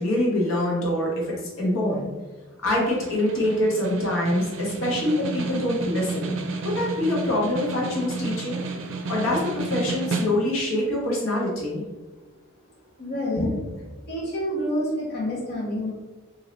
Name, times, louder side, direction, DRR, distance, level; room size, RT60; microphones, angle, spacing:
voice 1, 0.0-2.1 2.6-6.4 6.6-8.6 8.9-11.8 13.4-13.6, left 1 dB, 80° left, -4 dB, 1.1 m, -25 dB
Snare drum, 2.7-10.7, right 3 dB, 65° right, 0.5 m, -32 dB
voice 2, 13.0-13.5 14.1-15.9, equal, 50° left, -5 dB, 1.1 m, -28 dB
3.1 x 2.7 x 3.9 m, 1.2 s
head